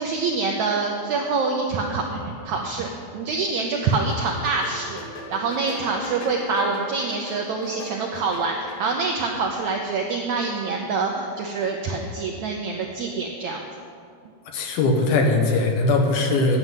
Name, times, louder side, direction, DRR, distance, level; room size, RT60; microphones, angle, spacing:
voice 1, 0.0-5.0 5.3-13.7, right 4 dB, 80° right, 1 dB, 1.6 m, -26 dB
sound 1, 3.6-9.2, left 1 dB, 50° left, 2.2 m, -40 dB
voice 2, 14.5-16.6, left 3 dB, 80° left, 2 dB, 3.2 m, -20 dB
9.3 x 7.7 x 9.0 m, 2.3 s
omnidirectional pair, 4.3 m